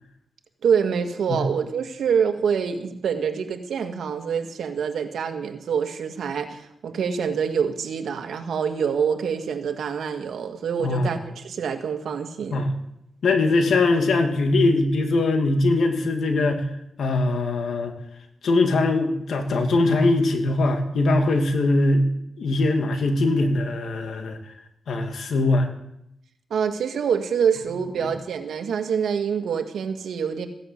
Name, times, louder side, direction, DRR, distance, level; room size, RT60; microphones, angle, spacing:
voice 1, 0.6-12.6 26.5-30.5, right 7 dB, 85° right, 6 dB, 1.8 m, -26 dB
voice 2, 10.8-11.1 12.5-12.7 13.2-16.7 17.0-17.9 18.4-22.1 22.4-24.4 24.9-25.7, left 2 dB, 75° left, 5 dB, 2.5 m, -21 dB
16.0 x 11.0 x 8.2 m, 0.80 s
cardioid pair, 90°, 0 cm